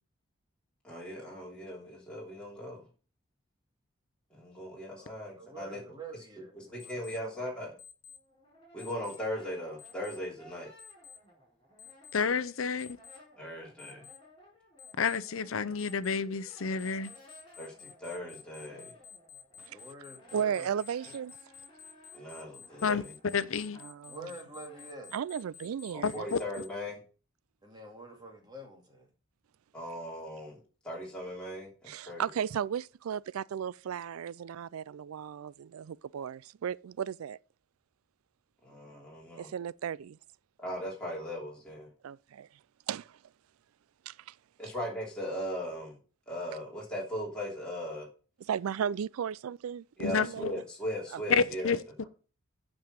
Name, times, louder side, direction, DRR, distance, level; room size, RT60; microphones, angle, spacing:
voice 1, 0.8-2.8 4.3-5.8 6.7-7.7 8.7-10.7 13.4-14.0 17.6-18.9 22.1-23.1 25.9-27.0 29.7-32.3 38.6-39.5 40.6-41.9 44.6-46.0 46.3-48.1 50.0-51.8, equal, 5° left, 3.1 m, -38 dB
voice 2, 5.0-7.7 19.7-20.7 21.0-21.1 24.1-25.1 27.6-29.1, right 2 dB, 20° right, 2.4 m, -48 dB
Alarm, 6.8-7.2 7.8-8.2 8.8-9.2 9.8-10.2 10.8-11.2 11.8-12.2 12.8-13.2 13.8-14.2 14.8-15.2 15.8-16.2 16.8-26.7, left 8 dB, 40° left, 1.3 m, -51 dB
Brass instrument, 8.1-12.5 12.8-24.9, equal, 25° left, 4.4 m, -59 dB
voice 3, 12.1-13.0 15.0-17.1 22.8-23.0 23.3-23.8 26.0-26.4 50.0-50.5 51.3-52.0, left 5 dB, 75° left, 0.6 m, -30 dB
voice 4, 20.3-21.4 23.8-24.3 25.1-26.2 31.9-37.4 39.4-40.2 42.0-42.5 42.9-43.2 44.1-44.4 48.5-50.5 51.1-51.4, right 8 dB, 90° right, 0.4 m, -35 dB
8.6 x 5.5 x 7.5 m
head